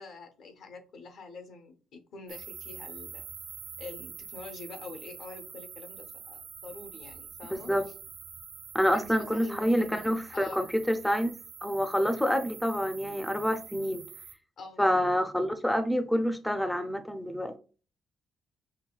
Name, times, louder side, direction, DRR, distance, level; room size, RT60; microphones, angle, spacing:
voice 1, 0.0-3.2 3.8-7.7 8.9-10.6 14.6-15.1, left 3 dB, 75° left, 0.8 m, -45 dB
sound 1, 2.3-14.3, right 7 dB, 85° right, 0.8 m, -46 dB
voice 2, 7.5-7.9 8.7-14.0 14.8-17.6, equal, 5° left, 0.4 m, -27 dB
5.5 x 2.2 x 2.3 m
cardioid pair, 75°, 0 cm